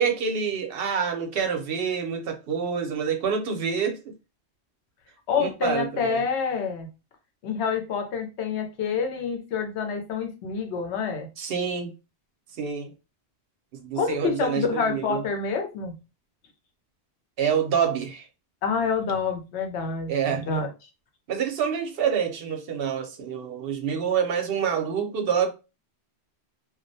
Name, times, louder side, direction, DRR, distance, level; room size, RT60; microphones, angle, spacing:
voice 1, 0.0-4.0 5.4-6.2 11.4-11.9 12.6-12.9 13.7-15.2 17.4-18.3 20.1-20.6 21.3-25.5, right 7 dB, 65° right, 0.7 m, -27 dB
voice 2, 5.3-6.9 7.4-11.3 14.0-16.0 18.6-20.7, left 5 dB, 85° left, 0.9 m, -27 dB
2.3 x 2.0 x 2.6 m
omnidirectional pair, 1.1 m